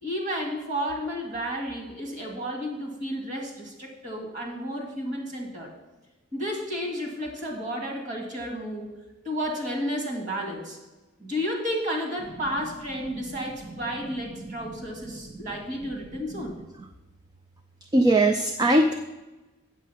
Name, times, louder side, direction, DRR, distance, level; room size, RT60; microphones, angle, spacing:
voice 1, 0.0-5.7 6.3-8.9 9.2-10.8 11.2-16.6, equal, 35° right, 1 dB, 2.0 m, -32 dB
voice 2, 17.9-19.0, right 1 dB, 20° right, 6 dB, 0.4 m, -20 dB
8.2 x 7.5 x 5.6 m, 1.1 s
head